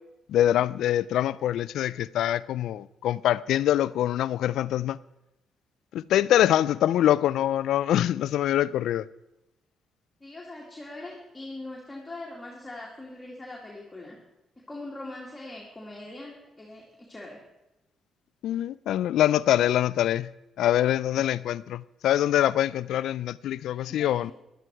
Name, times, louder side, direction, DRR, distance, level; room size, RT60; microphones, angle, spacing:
voice 1, 0.3-5.0 5.9-9.1 18.4-20.3 20.6-24.3, left 12 dB, 80° left, 0.3 m, -24 dB
voice 2, 10.2-14.2 14.7-17.4 21.2-21.3 23.7-24.3, left 2 dB, 15° left, 2.3 m, -42 dB
13.0 x 11.5 x 4.6 m
cardioid pair, 90°, 0 cm